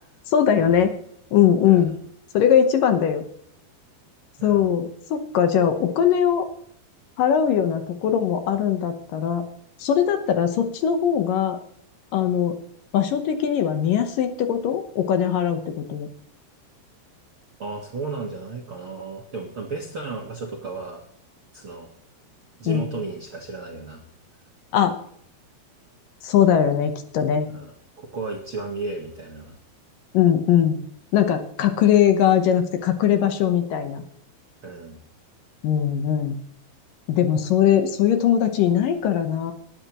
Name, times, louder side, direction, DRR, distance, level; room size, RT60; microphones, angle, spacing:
voice 1, 0.3-0.9 1.3-1.9 2.3-3.2 4.4-6.5 7.2-9.4 9.8-11.6 12.1-12.6 12.9-16.1 22.7-22.9 24.7-25.0 26.2-27.5 30.1-30.8 31.1-34.0 35.6-36.4 37.1-39.5, left 9 dB, 70° left, 7 dB, 2.4 m, -20 dB
voice 2, 17.6-21.0 21.5-21.9 22.6-24.0 27.5-29.6 34.6-35.0, right 3 dB, 55° right, 0 dB, 1.5 m, -34 dB
19.5 x 10.0 x 3.0 m, 0.66 s
omnidirectional pair, 4.7 m